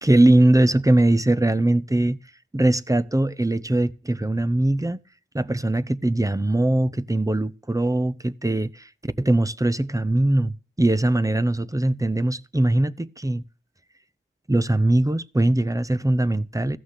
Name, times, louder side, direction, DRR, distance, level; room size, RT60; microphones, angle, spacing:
voice 1, 0.0-2.2 2.5-5.0 5.3-8.9 9.2-13.4 14.5-16.8, right 1 dB, 15° right, 0.7 m, -21 dB
15.0 x 6.2 x 8.2 m
wide cardioid pair, 50°, 21 cm